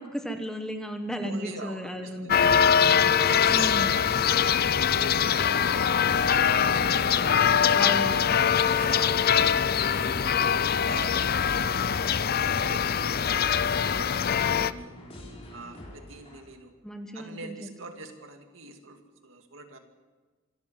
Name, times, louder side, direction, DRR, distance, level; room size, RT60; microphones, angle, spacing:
voice 1, 0.0-3.0 3.5-4.0 7.7-8.2 16.8-17.7, equal, 5° left, 5 dB, 1.4 m, -34 dB
voice 2, 1.1-4.0 4.6-6.5 6.8-7.7 8.1-8.2 8.7-10.1 10.7-15.0 15.5-16.7 17.1-19.8, right 3 dB, 70° right, 5 dB, 2.4 m, -45 dB
sound 1, 2.3-14.7, left 7 dB, 50° left, 0.5 m, -23 dB
sound 2, 6.1-16.4, left 1 dB, 30° left, 4.8 m, -45 dB
26.0 x 13.5 x 7.7 m, 1.4 s
head